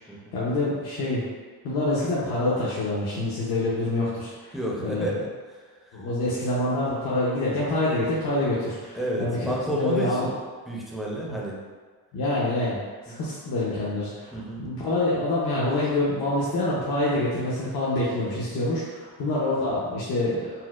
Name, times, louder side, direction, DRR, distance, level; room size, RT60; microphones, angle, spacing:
voice 1, 0.3-1.2 1.6-4.6 4.8-5.1 5.9-10.3 12.1-12.8 13.0-20.5, left 2 dB, 70° left, -8 dB, 0.7 m, -26 dB
voice 2, 4.5-6.0 8.9-10.3 10.7-11.6 14.3-14.6 18.5-18.6, right 1 dB, ahead, -5 dB, 0.4 m, -31 dB
4.1 x 2.1 x 2.3 m, 1.5 s
cardioid pair, 135°, 38 cm